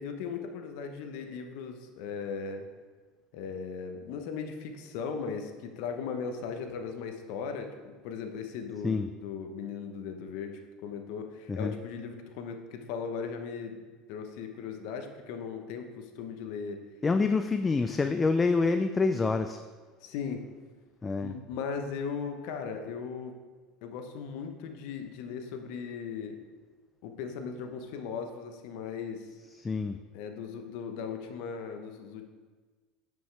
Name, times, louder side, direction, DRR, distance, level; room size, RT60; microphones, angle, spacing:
voice 1, 0.0-2.7 3.3-13.8 14.1-16.8 17.7-18.0 20.0-20.4 21.2-23.3 23.8-26.4 27.0-29.3 30.1-32.2, left 6 dB, 70° left, 6 dB, 0.9 m, -38 dB
voice 2, 17.0-19.6 21.0-21.3 29.5-30.0, left 4 dB, 20° left, 8 dB, 0.3 m, -27 dB
9.0 x 5.3 x 3.3 m, 1.4 s
supercardioid pair, 105°, 0 cm